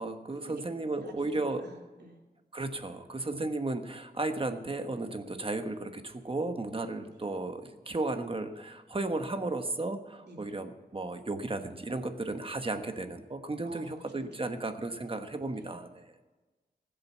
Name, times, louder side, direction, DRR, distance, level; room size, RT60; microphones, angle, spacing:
voice 1, 0.0-1.6 2.5-16.1, right 2 dB, 30° right, 7 dB, 1.2 m, -34 dB
voice 2, 1.0-2.2 7.1-7.3 10.2-10.5 13.6-14.5 15.6-15.8, right 2 dB, 85° right, 0 dB, 3.1 m, -51 dB
19.5 x 7.7 x 7.1 m, 1.2 s
wide cardioid pair, 120°, 17 cm